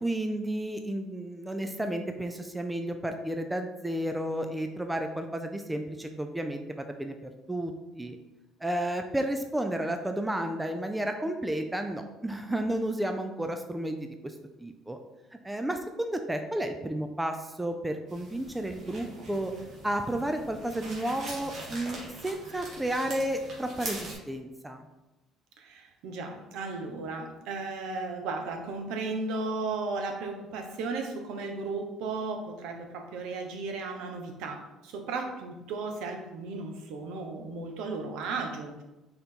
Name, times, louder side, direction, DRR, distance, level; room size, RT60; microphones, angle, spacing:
voice 1, 0.0-8.2 8.6-15.0 15.4-19.5 19.8-24.8, right 1 dB, 5° right, 6 dB, 0.4 m, -32 dB
sound 1, 18.1-24.1, right 2 dB, 45° right, 1.8 m, -42 dB
voice 2, 25.6-38.8, right 3 dB, 75° right, 4 dB, 1.0 m, -35 dB
5.5 x 3.9 x 4.4 m, 1.0 s
cardioid pair, 145°, 0 cm